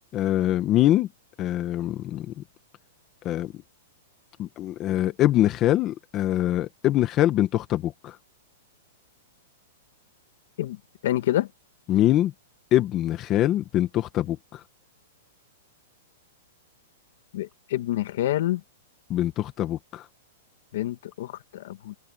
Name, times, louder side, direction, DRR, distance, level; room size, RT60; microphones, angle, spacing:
voice 1, 0.1-1.1 1.4-2.3 3.2-3.5 4.4-8.2 11.9-12.3 12.7-14.6 19.1-20.0, left 13 dB, 25° left, 1.6 m, -23 dB
voice 2, 11.0-11.5 17.3-18.6 20.7-21.9, left 14 dB, 60° left, 1.9 m, -27 dB
hypercardioid pair, 160°, 0 cm